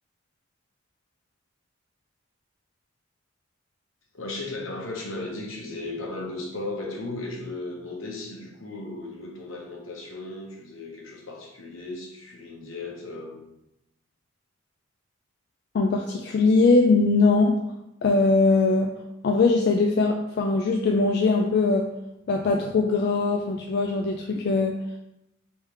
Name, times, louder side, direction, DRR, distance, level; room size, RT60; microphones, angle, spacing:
voice 1, 4.1-13.4, left 2 dB, 75° left, -1 dB, 1.1 m, -36 dB
voice 2, 15.7-17.6 18.0-18.9 19.2-21.9 22.3-24.8, left 3 dB, 50° left, 2 dB, 0.3 m, -21 dB
3.3 x 3.2 x 4.7 m, 0.86 s
head